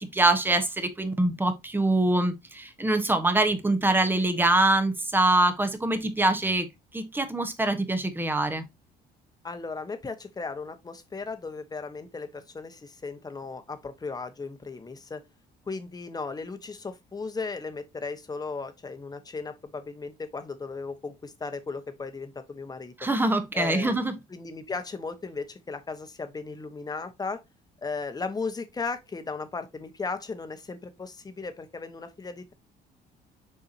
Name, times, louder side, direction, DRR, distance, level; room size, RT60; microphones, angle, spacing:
voice 1, 0.0-6.7 6.9-8.6 23.0-24.1, right 2 dB, 10° right, 1.3 m, -24 dB
voice 2, 9.4-15.2 15.7-22.9 23.5-24.0 24.3-27.4 27.8-32.5, left 4 dB, 20° left, 1.3 m, -36 dB
7.0 x 4.7 x 2.9 m
cardioid pair, 110°, 17 cm